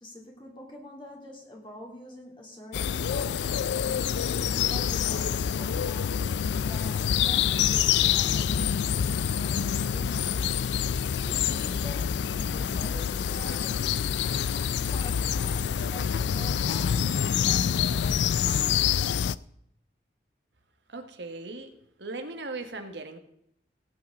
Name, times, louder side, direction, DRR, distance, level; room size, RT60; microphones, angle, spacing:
voice 1, 0.0-3.6 4.4-6.3 6.6-10.5 11.2-14.1 14.7-17.9, left 1 dB, 30° left, -1 dB, 3.0 m, -46 dB
sound 1, 2.7-19.3, left 8 dB, 80° left, 0.4 m, -26 dB
voice 2, 20.9-21.7 22.0-23.2, right 3 dB, 85° right, 6 dB, 1.5 m, -38 dB
17.5 x 8.9 x 3.8 m, 0.73 s
head